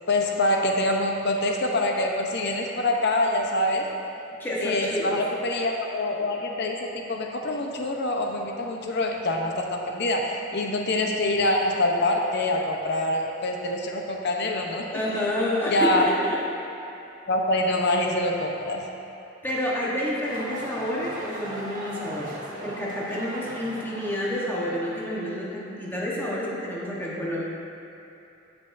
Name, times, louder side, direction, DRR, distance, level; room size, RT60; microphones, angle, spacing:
voice 1, 0.1-3.9 4.6-15.0 15.7-16.1 17.3-18.8, left 1 dB, 55° left, 1 dB, 0.7 m, -25 dB
voice 2, 4.4-5.2 14.9-16.4 19.4-22.4 22.6-27.4, left 1 dB, 10° left, -6 dB, 1.0 m, -29 dB
sound 1, 20.2-25.2, right 1 dB, 45° right, 1.3 m, -38 dB
13.0 x 6.0 x 2.6 m, 2.9 s
head